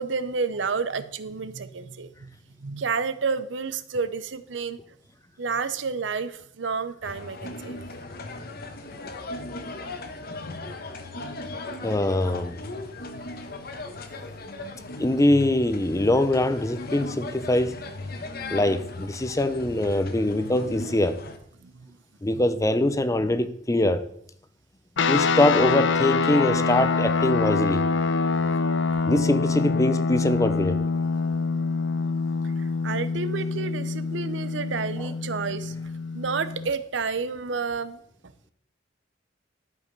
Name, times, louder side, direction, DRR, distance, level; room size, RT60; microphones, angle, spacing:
voice 1, 0.0-2.3 2.6-4.8 5.4-7.8 21.6-22.0 22.3-22.4 32.6-35.7 36.1-38.0, right 5 dB, 75° right, 0.7 m, -30 dB
sound 1, 7.0-21.4, left 2 dB, 55° left, 1.1 m, -38 dB
voice 2, 11.8-12.6 15.0-17.8 18.5-21.2 22.2-24.1 25.1-28.0 29.1-30.8, left 1 dB, 15° left, 0.6 m, -23 dB
sound 2, 25.0-36.7, left 4 dB, 75° left, 0.6 m, -25 dB
12.0 x 5.3 x 5.3 m
head